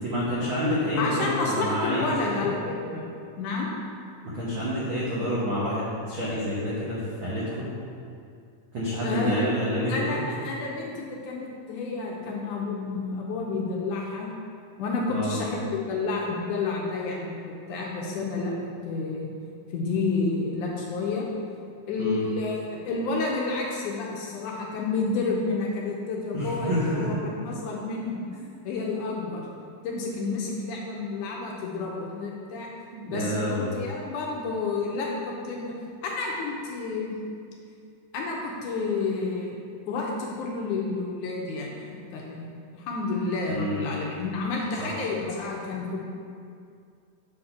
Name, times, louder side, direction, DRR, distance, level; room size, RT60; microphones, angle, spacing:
voice 1, 0.0-2.5 4.2-7.7 8.7-10.2 15.1-15.4 22.0-22.2 26.3-27.2 32.9-33.7 43.5-43.9 44.8-44.9, equal, 80° right, -8 dB, 1.1 m, -28 dB
voice 2, 1.0-3.1 3.4-3.7 9.0-9.4 9.9-14.3 14.8-19.3 19.7-21.3 21.9-28.2 28.6-29.5 29.8-32.7 33.1-35.7 36.0-37.2 38.1-39.6 39.9-41.8 42.1-42.5 42.7-46.0, left 3 dB, 75° left, -2 dB, 2.0 m, -30 dB
7.2 x 4.0 x 5.7 m, 2.4 s
omnidirectional pair, 4.0 m